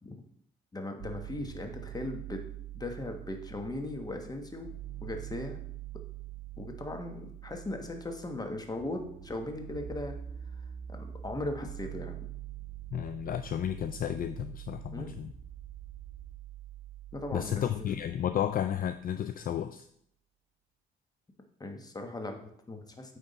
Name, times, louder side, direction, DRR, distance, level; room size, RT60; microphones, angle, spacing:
voice 1, 0.7-2.5 2.7-4.7 5.0-5.6 6.6-10.2 10.9-12.3 14.9-15.2 17.1-17.7 21.6-23.2, left 2 dB, 20° left, 4 dB, 1.1 m, -38 dB
sound 1, 1.0-19.0, right 11 dB, 75° right, 0.8 m, -45 dB
voice 2, 12.9-15.3 17.3-19.9, left 10 dB, 45° left, 9 dB, 0.4 m, -32 dB
9.0 x 3.6 x 4.0 m, 0.68 s
cardioid pair, 90°, 20 cm